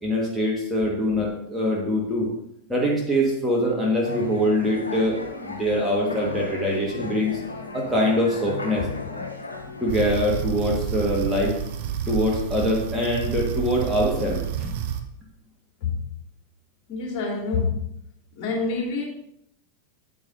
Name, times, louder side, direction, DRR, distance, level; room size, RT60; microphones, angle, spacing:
voice 1, 0.0-2.3 2.7-7.4 7.7-8.9 9.8-11.6 12.1-14.7, equal, ahead, -4 dB, 1.7 m, -24 dB
sound 1, 4.0-10.3, left 3 dB, 75° left, 0.9 m, -35 dB
sound 2, 9.9-15.0, right 9 dB, 50° right, 0.8 m, -29 dB
voice 2, 16.9-17.8 18.4-19.0, left 4 dB, 40° left, -1 dB, 2.5 m, -26 dB
8.7 x 8.3 x 2.8 m, 0.76 s
figure-of-eight pair, 90°, 0 cm